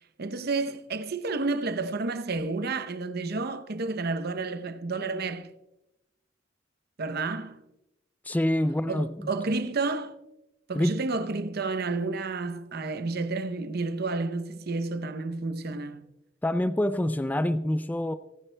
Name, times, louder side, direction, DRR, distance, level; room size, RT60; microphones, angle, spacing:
voice 1, 0.0-5.5 7.0-7.6 8.9-10.2 10.7-16.0, right 3 dB, 55° right, 0.7 m, -31 dB
voice 2, 8.3-9.1 10.7-11.0 16.4-18.1, left 1 dB, 10° left, 0.3 m, -26 dB
25.0 x 10.5 x 2.2 m
head